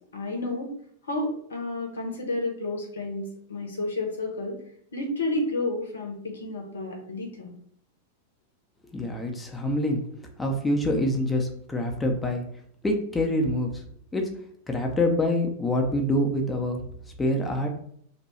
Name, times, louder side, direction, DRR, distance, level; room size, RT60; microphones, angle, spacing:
voice 1, 0.1-0.7 1.0-4.6 4.9-7.6, left 2 dB, 70° left, 2 dB, 0.7 m, -31 dB
voice 2, 8.9-12.4 12.8-13.8 14.1-14.3 14.7-16.8 17.2-17.7, left 1 dB, 10° left, 2 dB, 0.6 m, -26 dB
2.9 x 2.2 x 4.1 m, 0.64 s
figure-of-eight pair, 90°, 0 cm